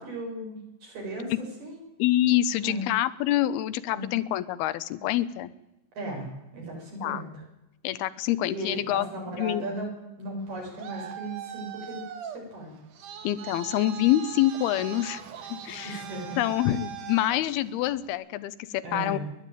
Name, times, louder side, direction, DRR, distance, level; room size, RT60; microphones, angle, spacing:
voice 1, 0.0-1.8 2.6-2.9 3.9-4.1 5.9-7.3 8.5-12.7 15.7-16.4 18.8-19.2, right 1 dB, 75° right, -1 dB, 8.4 m, -36 dB
voice 2, 2.0-5.5 7.0-7.2 7.8-9.6 13.2-15.2 15.5-16.0 16.4-19.2, left 13 dB, 80° left, 15 dB, 2.8 m, -26 dB
Traffic noise roadway noise, 10.4-18.1, right 9 dB, 60° right, 2.9 m, -41 dB
30.0 x 11.5 x 9.1 m, 0.93 s
omnidirectional pair, 4.5 m